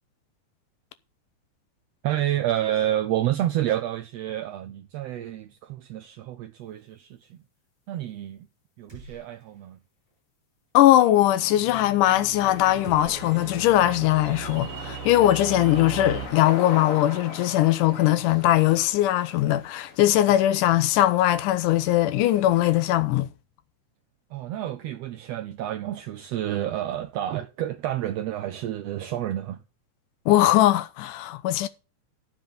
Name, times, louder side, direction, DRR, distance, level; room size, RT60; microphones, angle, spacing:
voice 1, 2.0-7.3 7.9-8.5 8.8-9.8 24.3-29.6, right 12 dB, 90° right, 1.4 m, -29 dB
sound 1, 8.9-9.8 10.1-10.2 12.8-14.1, right 2 dB, 10° right, 7.9 m, -48 dB
voice 2, 10.7-23.3 30.3-31.7, left 14 dB, 85° left, 2.3 m, -20 dB
sound 2, 11.0-16.3, right 7 dB, 50° right, 2.5 m, -38 dB
sound 3, 12.4-22.9, left 4 dB, 55° left, 0.9 m, -41 dB
10.5 x 7.6 x 5.5 m
omnidirectional pair, 3.7 m